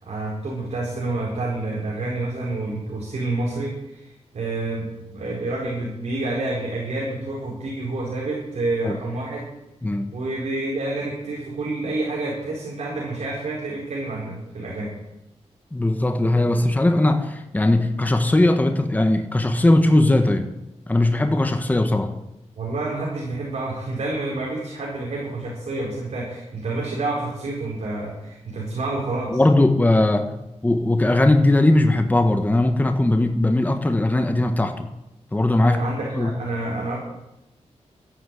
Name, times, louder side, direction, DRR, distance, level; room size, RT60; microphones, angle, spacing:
voice 1, 0.0-9.5 10.1-14.9 22.6-29.4 35.6-37.0, right 2 dB, 70° right, -4 dB, 4.5 m, -28 dB
voice 2, 15.7-20.5 20.9-22.1 29.3-30.3 30.6-34.9 35.3-35.8 36.1-36.3, left 2 dB, 15° left, 6 dB, 1.3 m, -19 dB
13.5 x 11.5 x 7.7 m, 0.94 s
wide cardioid pair, 130°, 12 cm